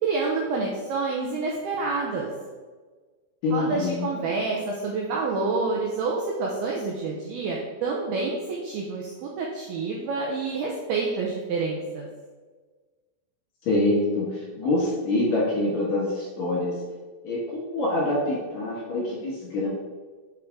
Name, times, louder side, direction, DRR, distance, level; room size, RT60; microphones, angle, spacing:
voice 1, 0.0-2.3 3.5-12.1, right 3 dB, 85° right, -2 dB, 2.2 m, -28 dB
voice 2, 3.4-4.1 13.6-16.8 17.2-19.7, left 2 dB, 55° left, -7 dB, 2.2 m, -25 dB
6.9 x 5.4 x 3.6 m, 1.4 s
omnidirectional pair, 5.4 m